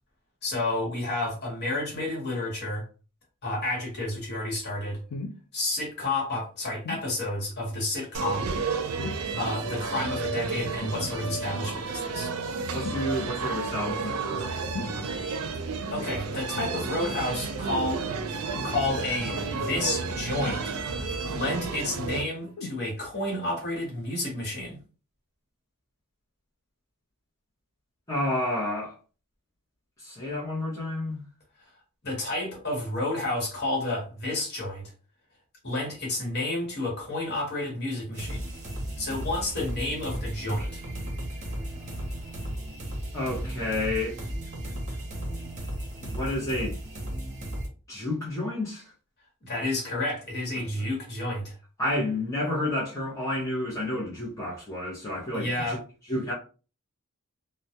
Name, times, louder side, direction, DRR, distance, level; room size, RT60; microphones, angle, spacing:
voice 1, 0.4-2.8 3.4-5.0 5.5-8.5 9.4-12.3 15.9-18.0 18.6-20.7 21.3-24.8 32.0-34.9 35.6-38.4 39.0-40.8 49.4-51.6 55.3-55.8, left 2 dB, 50° left, 1.1 m, -30 dB
sound 1, 5.1-5.4 6.8-7.1 9.0-9.4 10.8-11.1 12.8-13.1 14.7-15.0 16.6-16.8 18.5-18.8 20.4-21.0 22.6-22.8 23.6-23.7, left 3 dB, 80° left, 0.4 m, -38 dB
sound 2, 8.1-22.2, right 4 dB, 75° right, 0.4 m, -32 dB
voice 2, 12.7-14.5 14.8-15.2 28.1-28.9 30.0-31.2 43.1-44.2 46.0-46.8 47.9-48.9 50.6-50.7 51.8-55.8 56.1-56.3, left 1 dB, 15° left, 0.6 m, -30 dB
sound 3, 38.1-47.7, right 1 dB, 35° right, 0.7 m, -35 dB
2.2 x 2.0 x 2.7 m
head